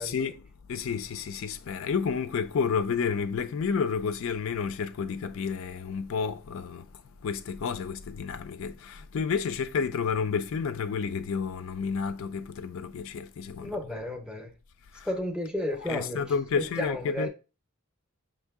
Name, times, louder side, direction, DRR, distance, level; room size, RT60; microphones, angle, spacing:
voice 1, 0.0-13.8 14.9-15.2 15.8-17.3, left 6 dB, 65° left, 0.3 m, -31 dB
voice 2, 13.6-14.5 15.0-16.2 16.6-17.3, left 1 dB, 5° right, 0.6 m, -33 dB
5.2 x 2.7 x 3.5 m
head